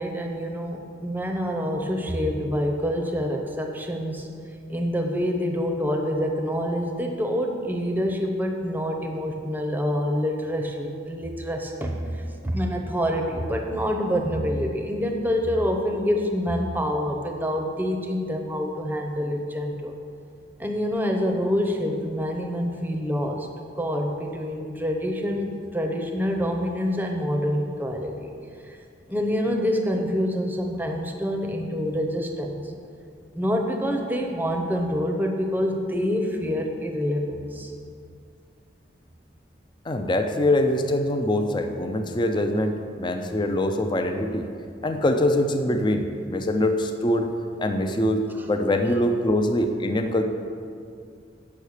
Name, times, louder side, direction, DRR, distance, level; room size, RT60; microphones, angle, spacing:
voice 1, 0.0-4.3 4.7-20.0 20.6-23.5 23.8-28.3 28.6-28.8 29.1-32.7 33.3-37.7 48.4-48.5, equal, 10° right, 2 dB, 0.8 m, -26 dB
voice 2, 39.9-44.5 44.8-47.3 47.6-50.2, left 1 dB, 25° left, 5 dB, 0.5 m, -23 dB
8.5 x 5.6 x 6.5 m, 2.3 s
head